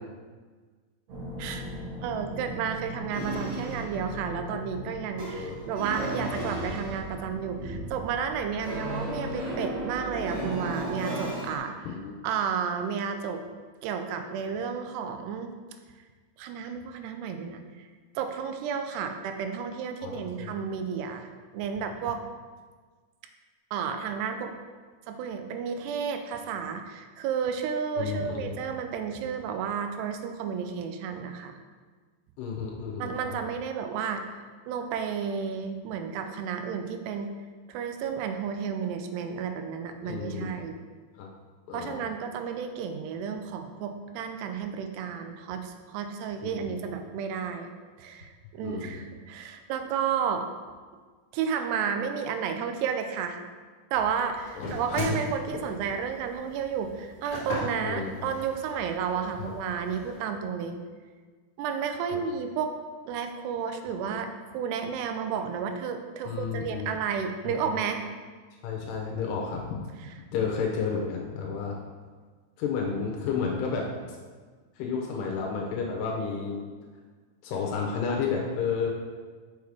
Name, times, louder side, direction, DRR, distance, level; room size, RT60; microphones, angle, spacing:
sound 1, 1.1-11.6, right 1 dB, 50° right, 2.5 m, -35 dB
voice 1, 2.0-11.9 12.2-13.4 13.8-15.5 16.4-17.9 18.2-22.2 23.7-24.5 25.1-31.6 33.0-34.2 34.7-37.3 37.7-40.8 41.7-47.7 48.0-50.5 51.3-53.4 53.9-60.8 61.6-62.7 63.1-68.0, right 7 dB, 85° right, 6 dB, 2.7 m, -32 dB
voice 2, 11.8-12.1 20.0-20.5 28.0-28.6 32.4-33.4 40.1-40.6 41.2-41.3 41.7-42.1 46.4-46.8 48.6-49.0 54.5-55.0 55.5-55.7 57.8-58.3 59.4-59.5 62.1-62.2 66.3-66.9 67.4-67.7 68.6-69.8 70.3-71.8 72.6-74.2 74.8-76.6 77.4-78.9, left 5 dB, 85° left, 0 dB, 2.8 m, -32 dB
sound 2, 53.9-60.2, left 1 dB, 45° left, 2.0 m, -38 dB
6.6 x 6.3 x 3.5 m, 1.5 s
omnidirectional pair, 4.7 m